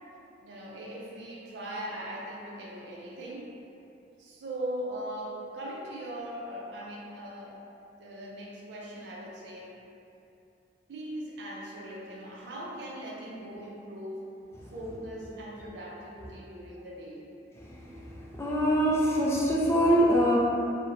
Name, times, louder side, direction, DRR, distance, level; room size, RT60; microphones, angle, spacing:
voice 1, 0.4-3.6 4.2-7.6 8.0-9.7 10.9-14.3 14.7-17.3, right 1 dB, 70° right, -4 dB, 0.4 m, -40 dB
voice 2, 17.6-20.4, equal, 15° left, -6 dB, 0.3 m, -25 dB
2.7 x 2.0 x 2.5 m, 2.8 s
head